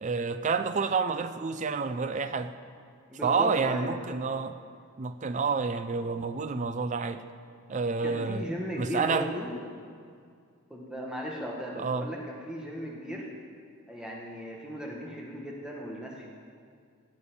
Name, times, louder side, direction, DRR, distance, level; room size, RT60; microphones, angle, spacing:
voice 1, 0.0-2.5 3.2-4.6 5.0-7.2 7.7-8.4 8.8-9.3 11.8-12.1, right 4 dB, 30° right, 10 dB, 0.4 m, -29 dB
voice 2, 3.1-4.0 8.0-9.5 10.7-13.3 13.9-16.3, equal, 5° right, -3 dB, 1.4 m, -37 dB
15.5 x 8.4 x 7.0 m, 2.2 s
head